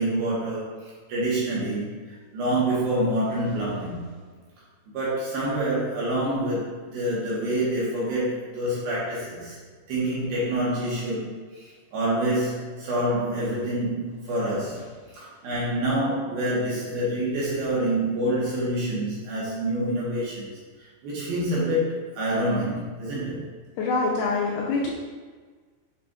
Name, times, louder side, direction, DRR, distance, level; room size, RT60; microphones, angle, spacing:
voice 1, 0.0-4.0 4.9-9.6 9.9-23.4, right 1 dB, 65° right, -7 dB, 2.7 m, -27 dB
voice 2, 23.8-24.9, left 3 dB, 85° left, -4 dB, 2.4 m, -25 dB
7.1 x 5.7 x 2.5 m, 1.5 s
omnidirectional pair, 5.3 m